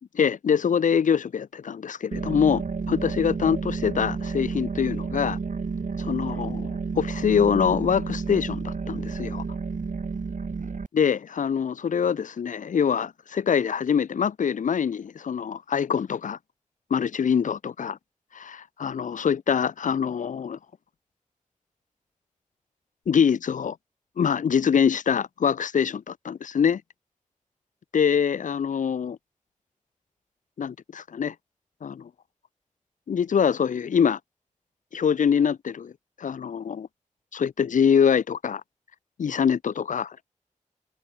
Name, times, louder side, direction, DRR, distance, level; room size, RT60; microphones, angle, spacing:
voice 1, 0.2-5.4 6.0-9.4 10.9-16.4 16.9-18.0 18.3-20.6 23.1-23.8 24.2-26.8 27.9-29.2 30.6-31.3 31.8-32.1 33.1-34.2 34.9-35.9 36.2-36.9 37.3-38.6 39.2-40.2, left 7 dB, 70° left, 0.4 m, -24 dB
sound 1, 2.1-10.9, right 4 dB, 70° right, 2.6 m, -31 dB
cardioid pair, 50°, 14 cm